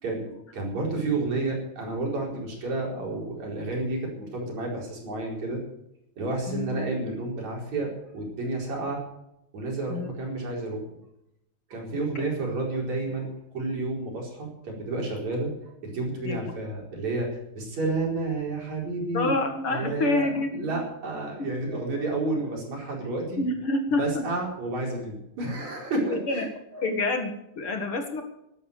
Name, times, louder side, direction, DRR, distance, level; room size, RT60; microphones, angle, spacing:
voice 1, 0.0-5.6 6.2-9.0 9.5-10.8 11.7-13.3 13.5-15.5 15.8-17.3 17.6-19.3 19.7-23.4 24.0-26.5 26.7-26.9, right 2 dB, 70° right, -1 dB, 6.0 m, -30 dB
voice 2, 6.5-6.8 9.9-10.1 11.9-12.2 16.2-16.5 19.1-20.8 21.4-21.5 23.4-24.3 26.0-26.4 26.8-28.2, left 2 dB, 50° left, 5 dB, 2.5 m, -28 dB
13.0 x 12.0 x 6.8 m, 0.82 s
omnidirectional pair, 3.3 m